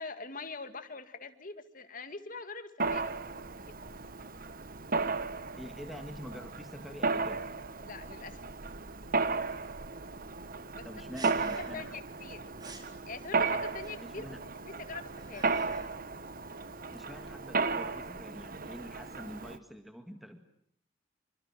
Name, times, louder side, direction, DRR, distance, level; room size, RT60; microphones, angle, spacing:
voice 1, 0.0-3.1 3.7-4.0 7.8-8.4 10.7-10.9 11.7-12.4 13.1-14.3 14.6-15.5, left 4 dB, 40° left, 9 dB, 2.1 m, -43 dB
Mechanisms, 2.8-19.6, right 4 dB, 45° right, 1.2 m, -35 dB
voice 2, 5.6-7.4 10.8-12.0 14.0-14.4 16.9-20.4, equal, ahead, 6 dB, 1.9 m, -46 dB
sound 1, 11.1-12.0 12.2-12.3 12.6-12.9 13.8-14.3 14.9-16.0 16.3-17.9, right 2 dB, 20° right, 4.2 m, -50 dB
27.5 x 25.5 x 7.5 m, 0.69 s
head